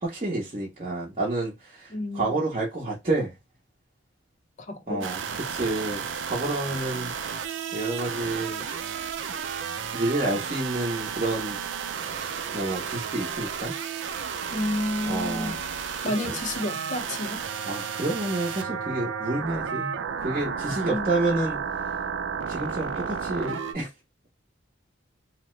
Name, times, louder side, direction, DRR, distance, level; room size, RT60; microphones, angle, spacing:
voice 1, 0.0-3.3 4.9-5.2 5.5-7.1 7.7-8.6 9.9-11.6 12.5-13.7 15.1-15.6 17.7-19.9 20.2-21.6 22.5-23.9, right 2 dB, 35° right, 0.8 m, -29 dB
voice 2, 1.9-2.4 4.6-5.1 14.5-15.6 16.0-17.4 20.9-21.4, left 1 dB, 40° left, 0.6 m, -31 dB
sound 1, 5.0-23.7, right 7 dB, 75° right, 0.4 m, -32 dB
2.8 x 2.0 x 3.0 m
head